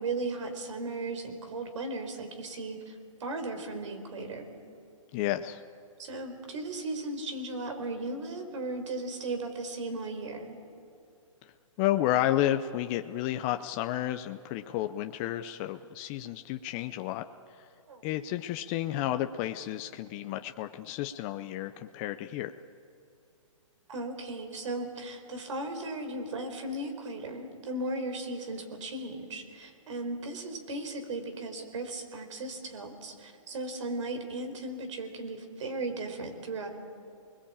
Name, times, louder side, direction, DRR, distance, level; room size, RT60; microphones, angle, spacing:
voice 1, 0.0-4.6 6.0-10.6 17.9-18.0 23.9-36.7, right 2 dB, 65° right, 7 dB, 4.4 m, -36 dB
voice 2, 5.1-5.6 11.8-17.2 18.0-22.5, left 13 dB, 25° left, 8 dB, 0.5 m, -31 dB
28.0 x 21.0 x 8.8 m, 2.5 s
hypercardioid pair, 155°, 17 cm